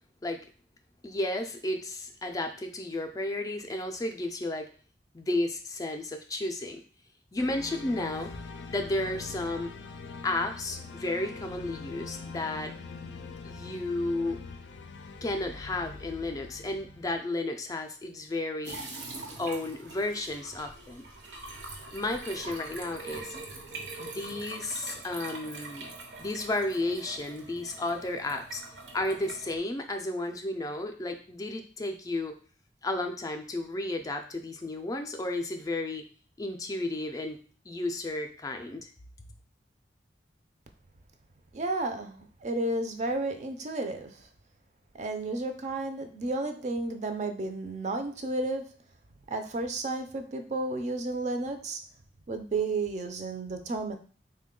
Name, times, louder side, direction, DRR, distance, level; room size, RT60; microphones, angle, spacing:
voice 1, 1.0-4.7 5.1-6.8 7.3-8.4 8.7-9.7 10.2-12.7 13.4-14.4 15.2-18.8 19.4-21.0 21.9-23.3 24.0-25.9 26.2-28.6 28.9-32.3 32.8-36.0 36.4-37.4 37.7-38.9, left 2 dB, 20° left, 5 dB, 0.3 m, -33 dB
sound 1, 7.4-17.2, left 4 dB, 90° left, 0.4 m, -43 dB
sound 2, 18.6-29.6, right 3 dB, 85° right, 0.8 m, -43 dB
voice 2, 41.5-44.2 44.9-48.7 49.3-51.8 52.3-54.0, right 2 dB, 40° right, 6 dB, 0.4 m, -32 dB
3.5 x 2.2 x 3.7 m, 0.41 s
head